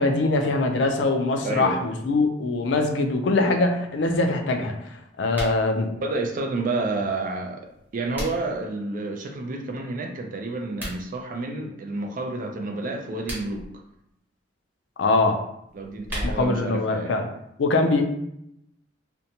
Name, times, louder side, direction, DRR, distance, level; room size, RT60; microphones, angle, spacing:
voice 1, 0.0-5.9 15.0-15.4 16.2-17.3 17.6-18.0, left 2 dB, 70° left, 0.4 m, -23 dB
voice 2, 1.4-1.8 6.0-7.7 7.9-13.8 15.7-17.2, right 2 dB, 45° right, 0.4 m, -30 dB
sound 1, 5.2-5.6 7.6-8.6 10.6-11.0 13.0-13.7 15.7-16.6, equal, 10° right, 0.9 m, -34 dB
2.6 x 2.2 x 2.8 m
head